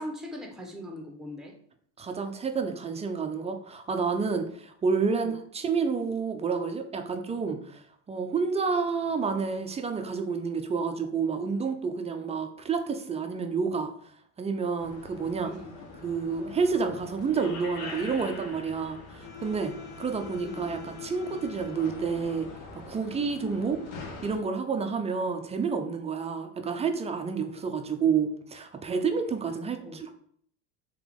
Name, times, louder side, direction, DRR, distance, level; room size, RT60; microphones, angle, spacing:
voice 1, 0.0-1.5 5.1-5.3 15.4-15.8 20.4-20.6 29.8-30.0, equal, ahead, 2 dB, 0.8 m, -40 dB
voice 2, 2.0-13.9 14.4-15.5 16.0-22.5 22.9-23.8 24.2-30.1, right 5 dB, 15° right, 5 dB, 0.4 m, -29 dB
sound 1, 14.8-24.4, left 4 dB, 75° left, 1.1 m, -42 dB
3.4 x 2.9 x 3.6 m, 0.63 s
supercardioid pair, 100°, 41 cm